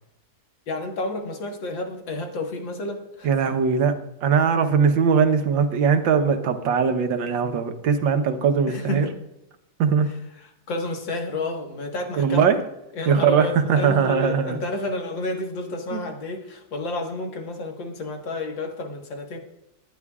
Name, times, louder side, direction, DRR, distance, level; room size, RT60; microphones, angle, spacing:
voice 1, 0.7-3.3 8.7-9.1 10.7-12.5 12.9-19.4, left 2 dB, 90° left, 2 dB, 2.3 m, -30 dB
voice 2, 3.2-4.0 4.2-9.1 9.8-10.1 12.2-12.6 13.1-14.6 15.9-16.0, right 6 dB, 85° right, 7 dB, 1.7 m, -20 dB
21.5 x 10.5 x 2.4 m, 0.87 s
omnidirectional pair, 2.0 m